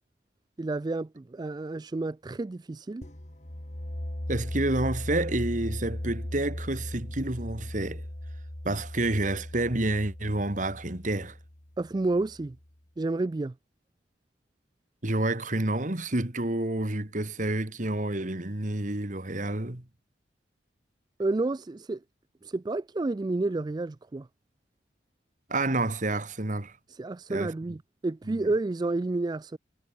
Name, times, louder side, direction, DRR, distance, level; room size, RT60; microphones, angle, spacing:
voice 1, 0.6-3.0 11.8-12.6 13.0-13.5 21.2-22.0 22.4-24.3 26.9-29.6, right 2 dB, 20° right, 0.3 m, -30 dB
sound 1, 3.0-12.6, left 1 dB, 40° left, 2.2 m, -38 dB
voice 2, 4.3-8.0 8.6-11.4 15.0-19.9 25.5-26.8 27.3-27.5 28.3-28.5, right 2 dB, 45° right, 1.9 m, -29 dB
head